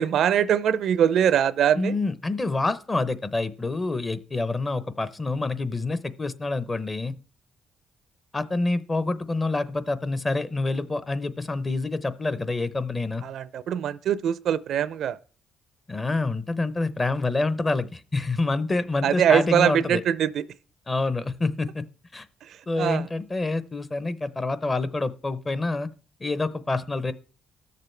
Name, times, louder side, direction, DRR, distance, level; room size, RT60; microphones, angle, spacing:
voice 1, 0.0-1.9 13.2-15.2 19.0-20.4 22.8-23.0, right 9 dB, 70° right, 0.4 m, -22 dB
voice 2, 1.8-7.2 8.3-13.2 15.9-20.0 20.9-21.9 22.1-22.3 22.7-25.9 26.2-27.1, left 3 dB, 25° left, 0.7 m, -27 dB
19.0 x 6.7 x 3.3 m
cardioid pair, 90°, 0 cm